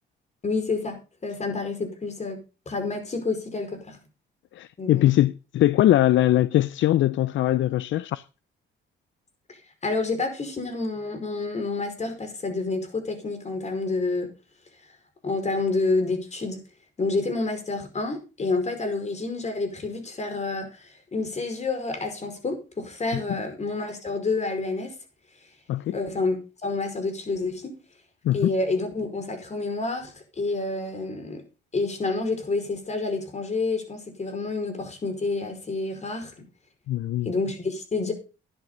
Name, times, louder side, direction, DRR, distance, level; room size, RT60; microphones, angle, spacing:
voice 1, 0.4-2.4 2.7-4.0 4.8-5.1 9.8-14.3 15.2-16.6 17.0-24.9 25.9-27.7 28.3-31.4 31.7-36.4 37.3-38.1, left 3 dB, 35° left, 5.2 m, -29 dB
voice 2, 4.5-8.2 25.7-26.0 28.2-28.5 36.9-37.3, left 14 dB, 70° left, 0.6 m, -21 dB
12.5 x 10.5 x 3.9 m
cardioid pair, 90°, 20 cm